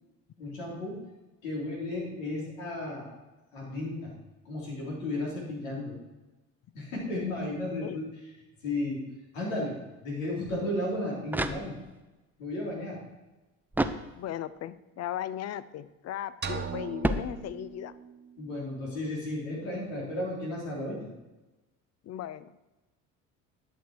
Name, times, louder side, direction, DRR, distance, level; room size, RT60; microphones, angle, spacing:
voice 1, 0.4-1.0 1.4-3.1 3.5-4.1 4.5-6.0 6.7-8.0 8.6-9.0 9.3-11.8 12.4-13.0 18.4-21.1, left 1 dB, 80° left, -3 dB, 3.8 m, -34 dB
sound 1, 11.2-12.2 13.7-14.6 17.0-17.9, right 1 dB, 5° right, 0.5 m, -32 dB
voice 2, 14.1-17.9 22.0-22.7, left 11 dB, 40° left, 16 dB, 0.6 m, -37 dB
sound 2, 16.4-18.4, right 7 dB, 25° right, 0.8 m, -38 dB
11.0 x 6.3 x 4.6 m, 1.1 s
hypercardioid pair, 70°, 39 cm